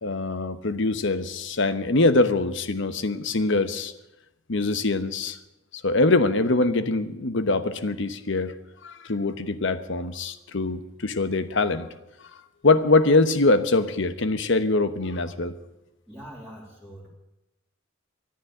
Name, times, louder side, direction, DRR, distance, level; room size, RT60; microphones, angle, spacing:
voice 1, 0.0-3.9 4.5-5.4 5.8-8.5 8.8-11.9 12.6-15.5, left 2 dB, 65° left, 12 dB, 1.0 m, -23 dB
voice 2, 16.1-17.1, equal, ahead, -6 dB, 2.9 m, -43 dB
14.0 x 10.5 x 8.5 m, 0.92 s
head